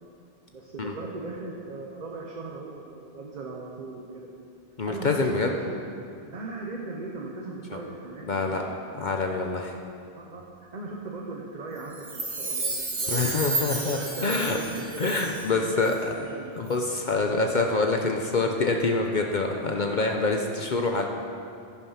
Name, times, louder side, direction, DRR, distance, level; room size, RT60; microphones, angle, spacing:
voice 1, 0.5-4.3 4.9-5.8 6.3-8.7 10.2-10.4 10.7-16.5, right 3 dB, 45° right, -2 dB, 1.1 m, -38 dB
voice 2, 4.8-5.5 8.3-8.6 9.0-9.7 13.1-14.6 15.0-15.9 16.6-21.1, left 3 dB, 50° left, 2 dB, 0.8 m, -26 dB
Chime, 11.9-15.6 15.8-15.9, right 3 dB, 65° right, 1.7 m, -31 dB
10.5 x 10.5 x 5.7 m, 2.5 s
omnidirectional pair, 1.1 m